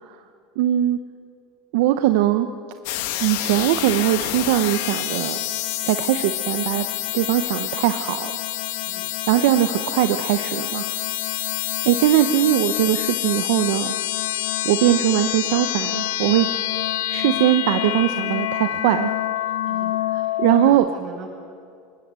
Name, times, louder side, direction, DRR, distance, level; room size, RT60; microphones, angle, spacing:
voice 1, 0.6-1.0 1.7-2.5 3.2-5.4 5.8-6.9 7.1-8.3 9.3-10.9 11.8-13.9 14.6-16.5 17.1-19.1 20.4-20.9, right 13 dB, 75° right, 9 dB, 0.9 m, -20 dB
sound 1, 2.9-20.7, left 14 dB, 75° left, 1.3 m, -27 dB
voice 2, 20.2-21.3, right 5 dB, 45° right, -1 dB, 7.6 m, -42 dB
21.0 x 19.5 x 7.6 m, 2.4 s
supercardioid pair, 125°, 0 cm